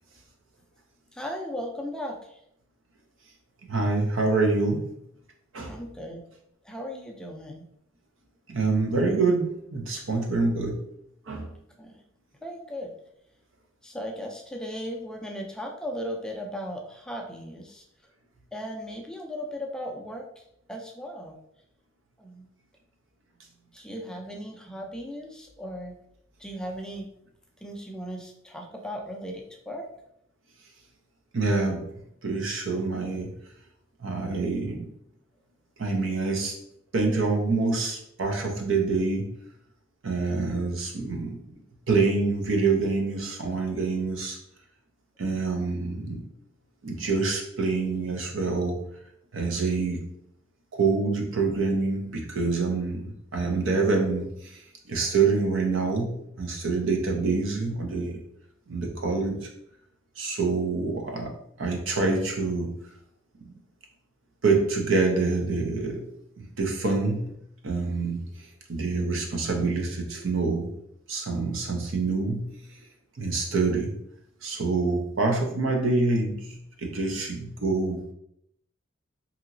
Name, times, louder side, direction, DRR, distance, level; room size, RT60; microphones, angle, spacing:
voice 1, 1.1-2.4 5.7-6.2 6.6-7.7 11.8-12.0 12.4-12.9 13.8-17.8 18.5-20.4 20.7-21.3 22.2-22.5 23.7-25.9 26.4-27.1 27.6-29.9 56.8-56.9, equal, 5° left, 1 dB, 0.3 m, -37 dB
voice 2, 3.7-4.8 5.5-5.7 8.5-10.8 11.3-11.5 31.3-31.8 32.2-33.3 34.0-34.9 35.8-36.6 36.9-39.3 40.0-41.4 41.9-44.4 45.2-46.2 46.8-48.8 49.3-50.1 50.7-54.6 54.9-58.2 58.7-59.4 60.2-61.3 61.6-62.7 64.4-66.0 66.4-67.3 67.6-68.3 68.7-70.7 71.1-72.5 73.2-73.9 74.4-78.0, right 3 dB, 90° right, 2 dB, 0.6 m, -26 dB
2.8 x 2.8 x 2.5 m, 0.75 s
head